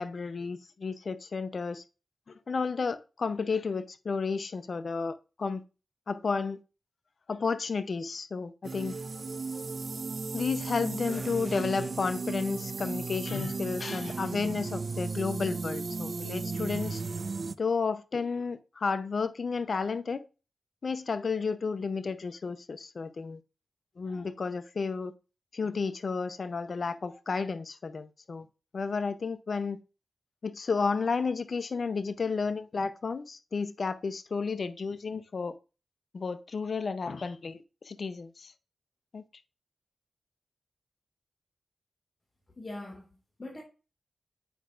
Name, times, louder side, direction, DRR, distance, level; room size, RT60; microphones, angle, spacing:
voice 1, 0.0-1.8 2.3-5.6 6.1-6.6 7.3-9.0 10.3-17.0 17.6-20.2 20.8-23.4 24.0-25.1 25.5-28.5 28.7-29.8 30.4-35.6 36.1-38.5 39.1-39.2, left 4 dB, 65° left, 0.6 m, -32 dB
sound 1, 8.6-17.6, right 4 dB, 55° right, 0.4 m, -35 dB
voice 2, 42.6-43.6, left 2 dB, 40° left, 1.9 m, -42 dB
8.1 x 5.5 x 2.4 m
cardioid pair, 40°, 0 cm